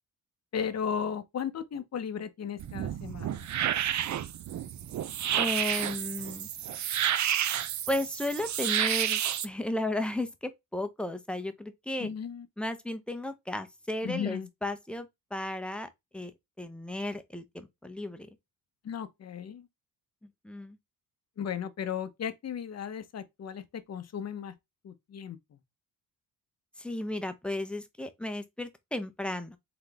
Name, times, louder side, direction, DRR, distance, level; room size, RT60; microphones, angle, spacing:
voice 1, 0.5-3.5 12.0-12.5 14.0-14.5 18.8-19.7 21.4-24.5 24.8-25.6, left 7 dB, 45° left, 0.7 m, -35 dB
sound 1, 2.6-9.5, right 10 dB, 50° right, 0.5 m, -30 dB
voice 2, 5.4-6.5 7.9-12.1 12.6-16.3 16.6-18.3 20.2-20.8 26.8-29.6, left 1 dB, 5° left, 0.7 m, -34 dB
3.9 x 3.8 x 3.4 m
cardioid pair, 120°, 38 cm